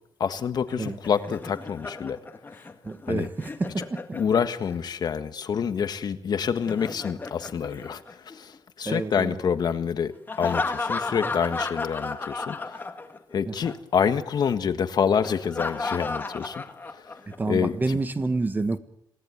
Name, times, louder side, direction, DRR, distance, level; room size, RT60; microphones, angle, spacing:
voice 1, 0.2-2.2 3.1-3.3 4.1-12.8 13.3-16.6 17.5-18.0, left 7 dB, 55° left, 10 dB, 1.5 m, -27 dB
Laughter, 0.7-4.7 6.4-8.6 10.3-13.3 13.6-13.7 15.2-17.3, left 3 dB, 25° left, 2.0 m, -33 dB
voice 2, 2.8-4.2 8.8-9.4 11.1-11.2 13.5-13.6 17.4-18.8, right 3 dB, 20° right, 10 dB, 1.5 m, -28 dB
27.0 x 18.0 x 9.5 m, 0.81 s
wide cardioid pair, 150°, 8 cm